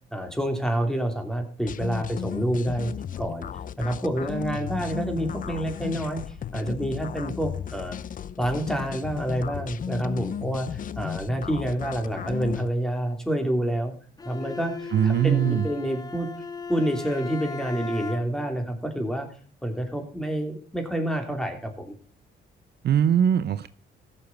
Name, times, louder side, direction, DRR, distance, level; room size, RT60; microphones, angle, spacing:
voice 1, 0.1-2.9 3.2-3.5 3.8-8.0 8.4-13.9 14.2-16.3 16.7-19.3 19.6-21.9, right 1 dB, 5° left, 4 dB, 3.0 m, -28 dB
sound 1, 1.6-12.7, left 8 dB, 45° left, 0.5 m, -34 dB
Bowed string instrument, 14.2-18.5, left 4 dB, 20° left, 0.8 m, -37 dB
voice 2, 14.9-15.6 22.8-23.7, right 9 dB, 55° right, 13 dB, 0.6 m, -21 dB
15.0 x 6.8 x 5.9 m, 0.42 s
cardioid pair, 90°, 20 cm